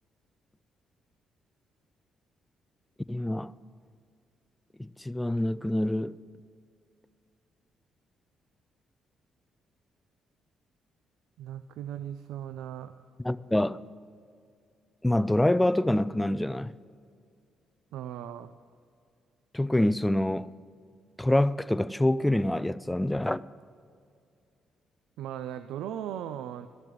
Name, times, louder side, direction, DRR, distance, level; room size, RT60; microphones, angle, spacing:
voice 1, 3.1-3.5 4.8-6.1 13.2-13.8 15.0-16.7 19.5-20.5 21.2-23.5, left 1 dB, 10° left, 0.4 m, -26 dB
voice 2, 11.4-12.9 17.9-18.5 25.2-26.7, right 10 dB, 90° right, 0.4 m, -37 dB
13.0 x 7.5 x 7.8 m
cardioid pair, 90°, 0 cm